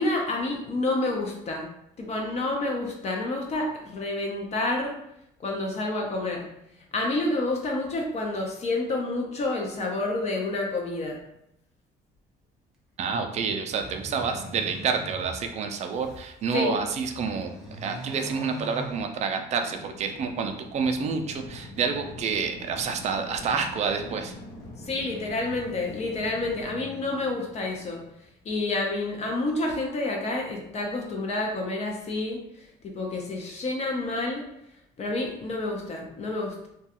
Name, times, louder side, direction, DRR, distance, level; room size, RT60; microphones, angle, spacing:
voice 1, 0.0-1.7 2.0-5.0 5.4-6.5 6.9-11.2 16.5-16.8 24.8-28.0 28.5-34.4 35.0-36.7, left 2 dB, 40° left, 1 dB, 0.5 m, -29 dB
voice 2, 13.0-17.5 17.8-24.3, right 5 dB, 40° right, 5 dB, 0.4 m, -28 dB
sound 1, 13.7-16.3 16.8-19.6, right 1 dB, ahead, 0.7 m, -41 dB
sound 2, 17.1-28.1, left 1 dB, 85° left, 1.0 m, -45 dB
2.3 x 2.3 x 2.8 m, 0.78 s
cardioid pair, 110°, 17 cm